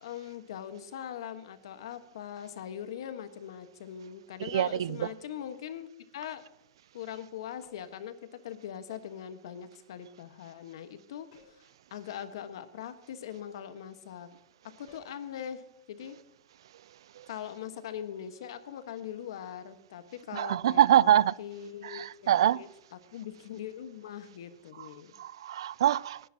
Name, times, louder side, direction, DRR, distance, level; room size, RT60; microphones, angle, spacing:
voice 1, 0.0-6.4 6.9-11.6 11.9-14.3 14.6-16.2 17.3-25.1, left 9 dB, 70° left, 1.3 m, -41 dB
voice 2, 4.4-5.0 20.3-21.3 21.8-22.6 25.2-26.2, right 11 dB, 80° right, 0.4 m, -24 dB
sound 1, 7.6-8.1 11.3-11.8 14.9-15.2, left 5 dB, 45° left, 3.7 m, -59 dB
19.5 x 11.0 x 2.8 m
supercardioid pair, 165°, 3 cm